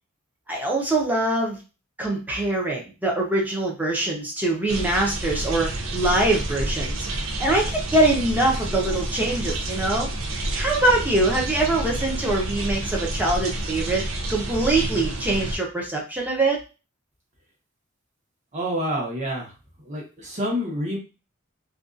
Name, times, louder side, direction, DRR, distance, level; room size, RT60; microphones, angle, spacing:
voice 1, 0.5-1.6 2.0-14.0 14.3-16.6, right 2 dB, 10° right, -1 dB, 0.6 m, -23 dB
sound 1, 4.7-15.6, right 1 dB, 70° right, 0.5 m, -29 dB
voice 2, 18.5-19.5 19.8-21.0, equal, 35° right, -2 dB, 1.0 m, -27 dB
2.5 x 2.3 x 2.5 m, 0.31 s
head